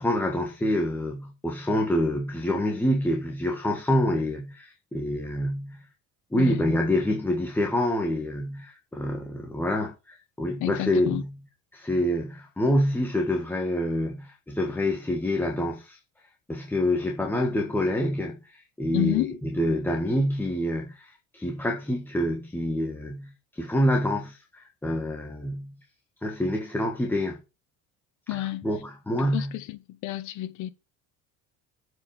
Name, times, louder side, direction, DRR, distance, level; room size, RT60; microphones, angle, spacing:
voice 1, 0.0-5.8 6.3-11.3 11.7-16.0 16.5-25.7 26.2-27.4 28.3-29.5, left 1 dB, 5° left, 1.5 m, -27 dB
voice 2, 6.3-6.8 10.6-11.2 18.9-19.4 28.3-28.7 29.2-30.7, left 14 dB, 65° left, 1.3 m, -30 dB
7.8 x 5.4 x 7.3 m
cardioid pair, 145°, 32 cm